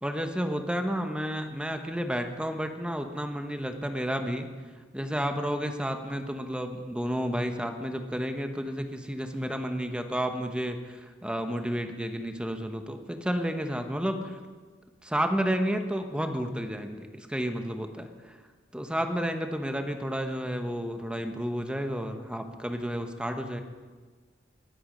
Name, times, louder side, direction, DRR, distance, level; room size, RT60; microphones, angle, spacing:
voice 1, 0.0-4.5 4.9-14.3 15.0-18.3 18.7-23.6, equal, 5° right, 6 dB, 1.0 m, -31 dB
20.0 x 8.5 x 5.2 m, 1.4 s
head